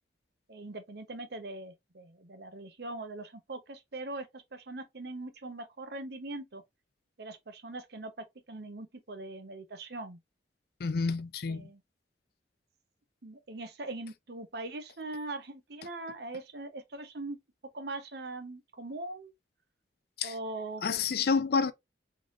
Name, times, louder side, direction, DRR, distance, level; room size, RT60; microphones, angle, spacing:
voice 1, 0.5-6.6 7.2-10.2 11.5-11.8 13.2-17.4 17.7-19.3 20.2-20.8, right 2 dB, 65° right, 0.9 m, -41 dB
voice 2, 10.8-11.7 20.2-20.3 20.8-21.7, left 5 dB, 60° left, 0.5 m, -29 dB
3.7 x 3.2 x 2.4 m
head